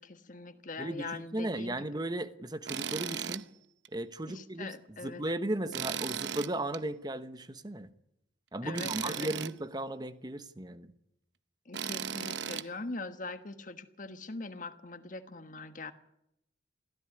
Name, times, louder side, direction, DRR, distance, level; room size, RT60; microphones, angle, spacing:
voice 1, 0.0-1.8 4.3-5.2 8.6-9.3 11.6-15.9, left 3 dB, 45° left, 9 dB, 1.3 m, -42 dB
voice 2, 0.8-3.4 3.9-7.9 8.5-10.9, right 1 dB, 25° right, 12 dB, 1.0 m, -36 dB
Tools, 2.7-3.4 3.8-3.9 5.7-6.8 8.8-9.5 11.7-12.7, right 8 dB, 85° right, 0.8 m, -36 dB
22.5 x 14.5 x 9.8 m, 0.83 s
head